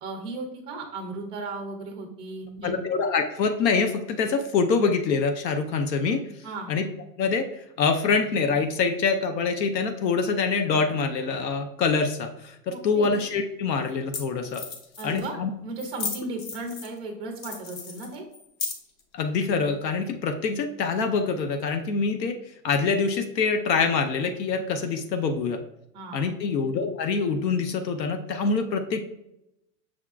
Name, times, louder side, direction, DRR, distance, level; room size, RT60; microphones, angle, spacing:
voice 1, 0.0-2.8 6.4-6.7 12.7-13.1 15.0-15.4 15.6-18.3 25.9-26.3, right 2 dB, 10° right, 2 dB, 0.3 m, -35 dB
voice 2, 2.6-6.2 6.7-6.9 7.2-14.6 15.0-15.5 19.1-22.4 22.6-25.6 26.1-29.0, left 4 dB, 85° left, 6 dB, 0.8 m, -25 dB
sound 1, 13.0-13.1 13.9-14.0 14.1-14.2 14.5-15.3 15.8-17.0 17.4-19.0, left 5 dB, 50° left, 1.1 m, -35 dB
6.2 x 3.5 x 2.4 m, 0.84 s
hypercardioid pair, 130°, 49 cm